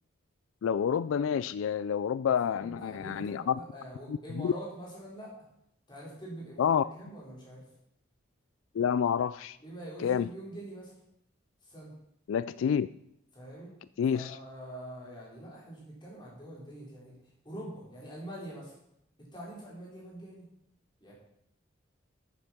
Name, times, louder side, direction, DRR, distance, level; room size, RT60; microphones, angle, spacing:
voice 1, 0.6-3.5 4.1-4.5 6.6-6.8 8.7-9.6 10.0-10.3 12.3-12.9 14.0-14.4, left 8 dB, 80° left, 16 dB, 0.3 m, -28 dB
voice 2, 2.4-5.3 5.9-7.6 9.6-10.9 11.6-11.9 13.3-13.7 14.1-17.1 17.4-18.7 19.2-20.4 21.0-21.1, right 1 dB, 20° left, -5 dB, 4.4 m, -44 dB
9.8 x 8.9 x 5.9 m, 0.76 s
head